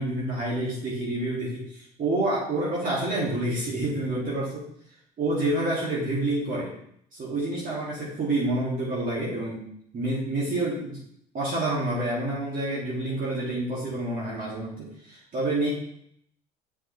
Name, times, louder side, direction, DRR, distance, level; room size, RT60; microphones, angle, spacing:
voice 1, 0.0-4.7 5.2-6.7 7.1-9.6 9.9-11.0 11.3-15.7, right 2 dB, 45° right, -6 dB, 3.0 m, -28 dB
7.4 x 5.9 x 3.6 m, 0.69 s
hypercardioid pair, 70°, 20 cm